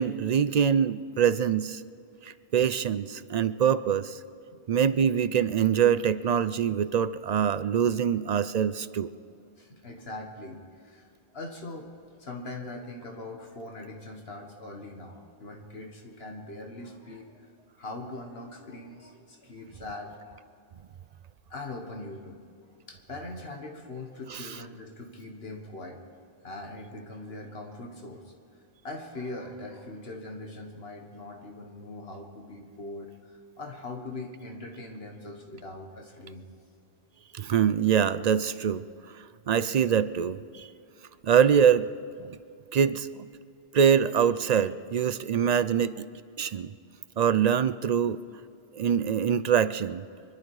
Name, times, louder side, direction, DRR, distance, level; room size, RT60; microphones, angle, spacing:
voice 1, 0.0-1.8 2.2-4.2 4.7-9.1 24.3-24.5 37.3-38.8 39.5-40.7 41.2-41.9 42.3-42.4 42.7-43.3 43.7-46.1 46.4-46.7 47.2-48.2 48.7-50.0, right 8 dB, 55° right, 14 dB, 0.5 m, -24 dB
voice 2, 9.6-11.9 12.2-17.5 17.8-20.4 21.5-22.4 22.9-26.0 26.4-28.3 28.8-36.4, left 2 dB, 70° left, 2 dB, 1.7 m, -41 dB
25.5 x 11.5 x 4.8 m, 2.5 s
omnidirectional pair, 1.1 m